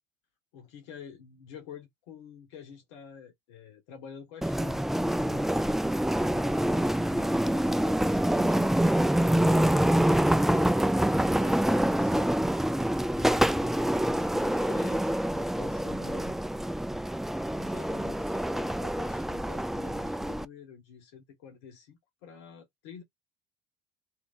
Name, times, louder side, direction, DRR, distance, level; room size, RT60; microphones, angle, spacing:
voice 1, 0.5-4.8 5.2-5.8 6.3-8.8 11.4-12.4 13.1-16.4 17.6-23.0, left 7 dB, 75° left, 1.2 m, -48 dB
sound 1, 4.4-20.4, right 1 dB, ahead, 0.3 m, -26 dB
3.0 x 2.8 x 3.5 m
hypercardioid pair, 70°, 14 cm